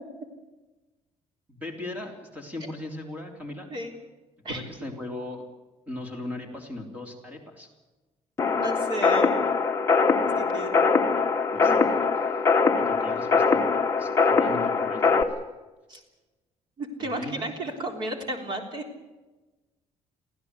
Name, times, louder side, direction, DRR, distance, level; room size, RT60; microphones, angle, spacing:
voice 1, 1.5-3.7 4.5-5.5 5.9-7.7 11.5-11.8 12.8-13.6 14.0-15.3 17.0-17.5, left 2 dB, 15° right, 3 dB, 3.4 m, -38 dB
sound 1, 8.4-15.2, left 4 dB, 20° left, 1.5 m, -22 dB
voice 2, 8.5-9.4 10.4-10.8 11.6-11.9 15.9-16.0 16.8-18.8, right 1 dB, 40° right, 4 dB, 3.8 m, -33 dB
24.0 x 15.5 x 8.3 m, 1.1 s
cardioid pair, 180°, 12 cm